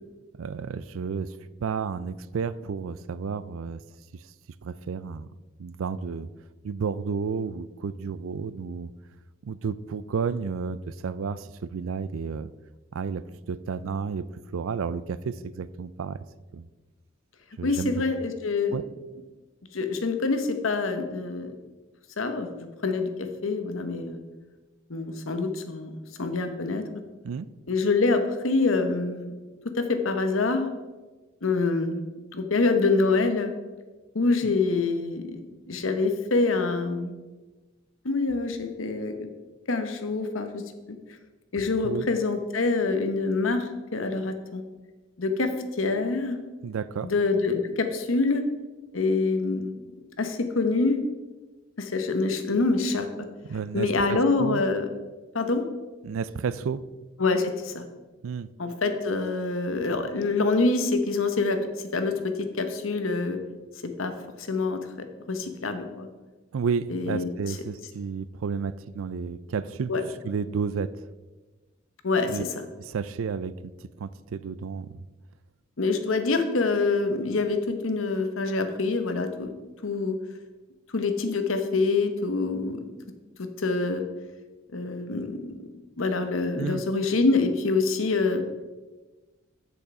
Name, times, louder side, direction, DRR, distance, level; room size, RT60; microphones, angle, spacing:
voice 1, 0.4-3.8 4.1-4.2 4.6-5.3 5.6-6.3 6.6-8.9 9.4-12.5 12.9-16.2 16.5-16.7 17.6-17.9 18.7-18.8 27.2-27.5 41.8-42.1 46.6-47.1 53.5-54.6 56.0-56.8 58.2-58.5 66.5-69.9 70.2-70.9 72.3-72.4 72.8-73.6 73.8-75.0 86.6-86.8, right 5 dB, 85° right, 17 dB, 0.4 m, -31 dB
voice 2, 17.6-18.8 19.7-21.6 22.2-24.2 24.9-25.9 26.2-26.8 27.7-29.3 29.7-30.7 31.4-32.1 32.3-33.5 34.1-35.4 35.7-37.1 38.0-39.3 39.7-40.6 41.5-44.6 45.2-46.4 47.0-48.5 48.9-49.8 50.2-51.0 51.8-53.1 53.7-54.9 55.3-55.6 57.2-57.8 58.6-63.4 64.0-64.1 64.4-64.8 65.3-66.1 66.9-67.6 69.9-70.0 72.0-72.5 75.8-79.5 79.8-80.2 80.9-82.9 83.4-84.0 84.7-85.7 86.0-88.4, left 3 dB, 80° left, 7 dB, 1.0 m, -26 dB
8.2 x 6.8 x 4.8 m, 1.2 s
head